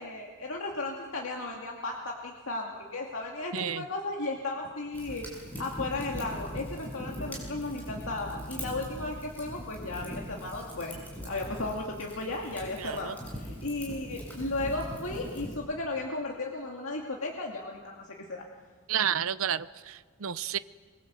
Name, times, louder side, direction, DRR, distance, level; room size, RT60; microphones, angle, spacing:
voice 1, 0.0-5.3 5.6-18.4, left 2 dB, 65° left, -1 dB, 2.4 m, -35 dB
voice 2, 3.5-3.8 12.8-13.2 18.9-20.6, right 9 dB, 70° right, 15 dB, 0.7 m, -31 dB
Fire, 4.9-15.6, equal, 5° left, 7.1 m, -41 dB
25.5 x 24.0 x 8.1 m, 1.5 s
head